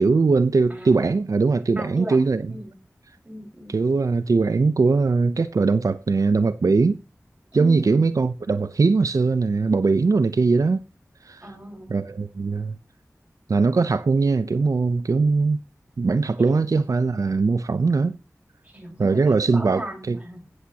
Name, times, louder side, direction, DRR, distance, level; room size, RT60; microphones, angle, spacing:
voice 1, 0.0-2.4 3.7-7.0 7.5-10.8 11.2-11.4 11.9-12.8 13.5-15.6 16.0-18.2 19.0-20.2, right 4 dB, 80° right, 0.6 m, -20 dB
voice 2, 0.7-1.1 1.8-2.2 2.5-2.7 3.2-3.8 7.5-8.0 11.4-12.0 16.4-16.6 18.6-20.4, right 1 dB, 25° right, 4.7 m, -37 dB
15.5 x 8.0 x 2.8 m
wide cardioid pair, 65°, 6 cm